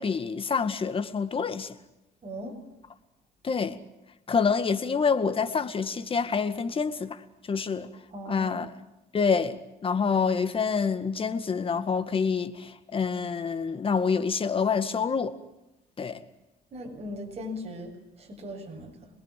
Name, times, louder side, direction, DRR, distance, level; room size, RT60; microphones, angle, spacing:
voice 1, 0.0-1.8 3.4-3.8 4.3-7.2 7.5-7.9 8.3-8.7 9.1-15.3 16.0-16.2, left 5 dB, 30° left, 2.0 m, -27 dB
voice 2, 2.2-2.5 8.1-8.6 16.7-19.1, left 1 dB, 40° right, 7.8 m, -39 dB
27.0 x 20.5 x 7.7 m
cardioid pair, 110°, 17 cm